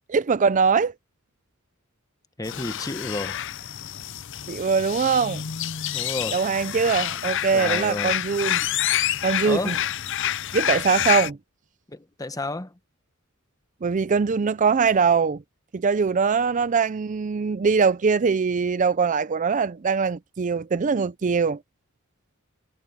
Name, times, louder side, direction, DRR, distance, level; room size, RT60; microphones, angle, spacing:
voice 1, 0.1-0.9 4.5-5.4 6.3-8.6 9.2-9.7 10.5-11.4 13.8-15.4 15.7-21.6, right 5 dB, 35° right, 0.4 m, -22 dB
sound 1, 2.4-11.3, left 11 dB, 60° left, 0.7 m, -28 dB
voice 2, 2.4-3.4 5.9-6.4 7.5-8.2 9.4-9.8 11.9-12.8, left 2 dB, 15° left, 1.0 m, -31 dB
head